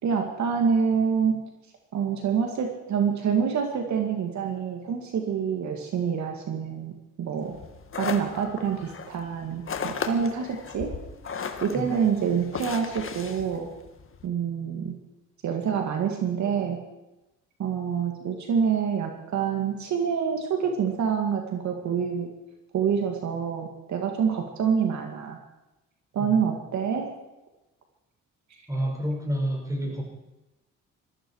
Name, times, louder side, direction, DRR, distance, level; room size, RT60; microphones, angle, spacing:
voice 1, 0.0-1.4 1.9-6.9 7.2-7.6 7.9-10.9 11.6-13.7 14.2-15.0 15.4-16.8 17.6-22.3 22.7-25.4 26.1-27.1, right 7 dB, 70° right, 3 dB, 2.3 m, -26 dB
sound 1, 7.5-14.2, left 6 dB, 45° left, 1.8 m, -36 dB
voice 2, 28.7-30.0, equal, 10° right, 0 dB, 6.0 m, -29 dB
20.5 x 14.5 x 4.8 m, 0.99 s
cardioid pair, 90°, 30 cm